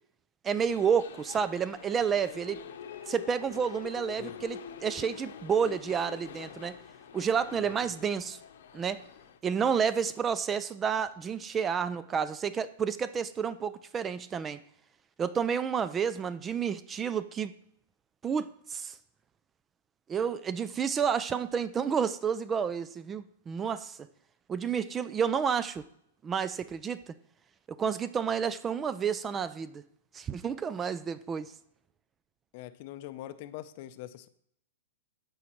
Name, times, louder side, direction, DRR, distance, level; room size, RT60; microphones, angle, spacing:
voice 1, 0.4-2.6 3.1-6.8 7.1-8.4 8.7-9.0 9.4-14.6 15.2-17.5 18.2-19.0 20.1-24.0 24.5-25.8 26.2-27.0 27.7-29.8 30.1-31.5, right 7 dB, 15° right, 15 dB, 0.3 m, -30 dB
sound 1, 0.6-9.4, left 8 dB, 70° left, 0.8 m, -46 dB
voice 2, 32.5-34.3, left 13 dB, 45° left, 12 dB, 0.5 m, -43 dB
14.0 x 5.1 x 3.0 m, 0.72 s
hypercardioid pair, 145°, 0 cm